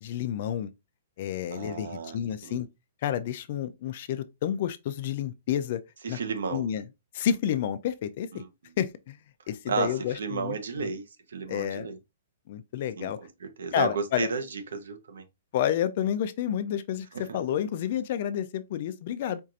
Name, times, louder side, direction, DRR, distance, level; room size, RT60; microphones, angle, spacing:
voice 1, 0.0-0.7 1.2-2.7 3.0-5.8 6.1-6.2 6.5-6.9 7.1-8.4 8.8-9.2 9.5-10.9 11.5-11.9 12.5-13.2 13.7-14.3 15.5-19.4, left 10 dB, 40° left, 0.3 m, -30 dB
voice 2, 1.5-2.6 6.0-6.7 8.3-8.5 9.6-12.0 13.0-15.2 17.1-17.4, right 5 dB, 85° right, 0.8 m, -33 dB
4.5 x 2.4 x 2.6 m
hypercardioid pair, 170°, 0 cm